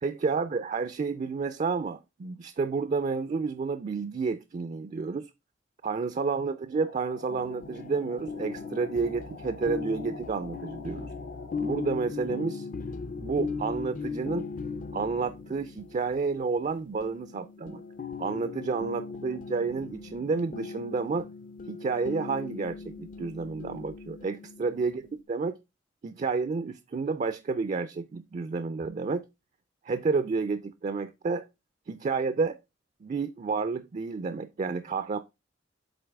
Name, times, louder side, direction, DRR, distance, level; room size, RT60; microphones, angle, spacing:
voice 1, 0.0-5.3 5.8-11.1 11.6-12.7 13.2-14.5 14.9-17.8 18.2-21.3 21.7-25.0 25.3-25.6 26.0-29.2 29.9-31.5 31.9-32.6 33.0-35.2, right 4 dB, 40° right, 0.4 m, -30 dB
sound 1, 6.7-11.9, left 4 dB, 90° left, 1.2 m, -48 dB
sound 2, 7.3-25.2, left 4 dB, 45° left, 0.5 m, -39 dB
7.8 x 4.0 x 3.4 m
head